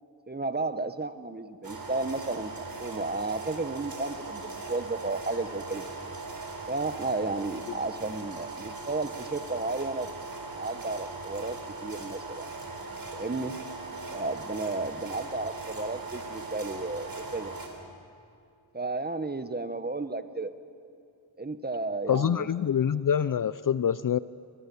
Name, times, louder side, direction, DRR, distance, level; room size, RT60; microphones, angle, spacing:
voice 1, 0.3-2.5 2.8-5.8 6.7-10.1 10.5-12.5 13.1-13.6 14.1-17.5 18.7-20.5 21.4-22.5, right 3 dB, 20° right, 11 dB, 1.1 m, -33 dB
sound 1, 1.6-17.7, right 3 dB, 50° right, 3.9 m, -39 dB
voice 2, 22.1-24.2, left 8 dB, 45° left, 17 dB, 0.5 m, -25 dB
23.0 x 21.5 x 7.0 m, 2.5 s
cardioid pair, 60°, 45 cm